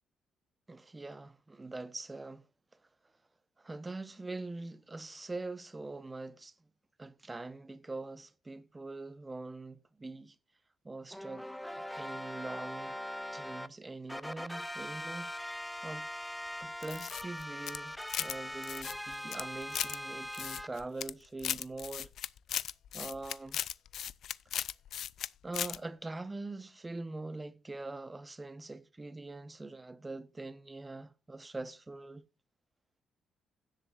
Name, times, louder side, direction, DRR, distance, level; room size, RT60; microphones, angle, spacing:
voice 1, 0.7-2.5 3.6-6.5 7.0-10.4 10.8-11.5 11.7-13.0 13.3-16.1 16.6-22.1 22.9-23.6 25.4-32.2, right 2 dB, 20° right, 0.9 m, -43 dB
sound 1, 11.1-13.7 14.1-20.7, left 1 dB, 5° left, 0.6 m, -41 dB
sound 2, 16.8-18.4 18.6-20.0 20.3-21.1 21.4-25.3 25.5-25.8, left 10 dB, 70° left, 0.4 m, -37 dB
16.5 x 7.8 x 2.5 m
cardioid pair, 90°, 0 cm